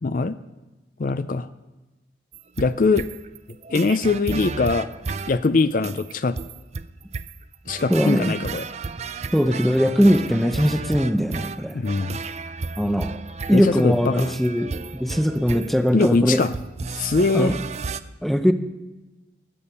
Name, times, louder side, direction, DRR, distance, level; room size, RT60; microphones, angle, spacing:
voice 1, 0.0-0.4 1.0-1.5 2.6-3.1 3.7-4.9 5.3-6.4 7.7-8.7 11.7-12.2 13.5-14.3 15.9-16.5 16.9-17.5, left 3 dB, 45° left, 12 dB, 0.4 m, -22 dB
sound 1, 2.3-18.0, right 4 dB, 35° right, 0.4 m, -33 dB
voice 2, 7.9-8.4 9.3-11.8 12.8-13.2 13.5-14.7 15.0-16.4 17.3-17.6 18.2-18.5, equal, ahead, 8 dB, 0.6 m, -20 dB
21.0 x 8.8 x 5.5 m, 1.1 s
head